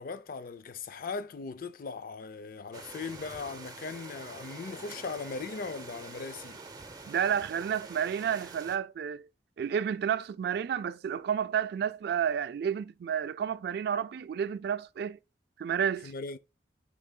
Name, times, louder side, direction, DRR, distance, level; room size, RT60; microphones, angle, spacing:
voice 1, 0.0-6.6 16.0-16.4, left 4 dB, 55° left, 0.4 m, -39 dB
sound 1, 2.7-8.8, right 3 dB, 20° right, 0.7 m, -46 dB
voice 2, 7.1-9.3 9.6-15.2 15.6-16.1, right 8 dB, 65° right, 0.3 m, -31 dB
10.0 x 4.6 x 2.2 m
head